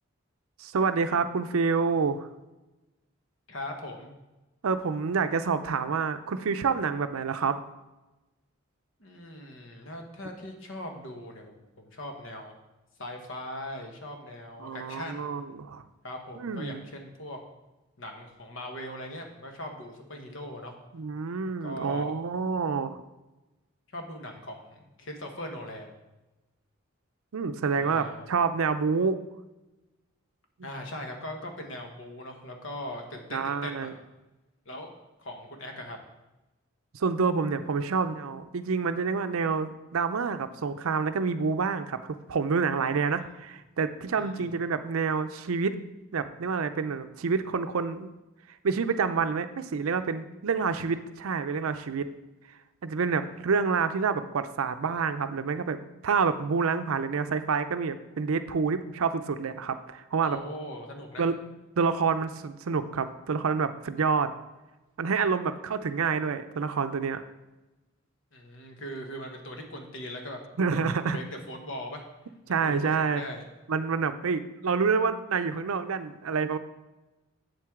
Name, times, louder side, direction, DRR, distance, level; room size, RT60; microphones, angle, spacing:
voice 1, 0.6-2.3 4.6-7.6 14.6-15.8 16.4-16.8 20.9-23.0 27.3-29.2 33.3-33.9 36.9-45.8 46.1-48.1 48.6-52.1 52.8-55.8 56.0-60.4 61.2-61.4 61.8-64.3 65.0-67.2 70.6-71.2 72.5-73.2 73.7-76.6, right 5 dB, 80° right, 10 dB, 0.5 m, -28 dB
voice 2, 3.5-4.1 9.0-12.5 13.0-15.3 16.0-17.4 18.0-20.7 21.6-22.1 23.9-25.9 27.7-28.3 30.6-33.9 34.6-34.9 35.2-36.0 43.2-43.3 44.2-44.5 60.2-61.2 68.3-72.0 72.5-73.4, left 1 dB, 60° left, 3 dB, 1.2 m, -40 dB
7.8 x 7.6 x 3.7 m, 1.0 s
head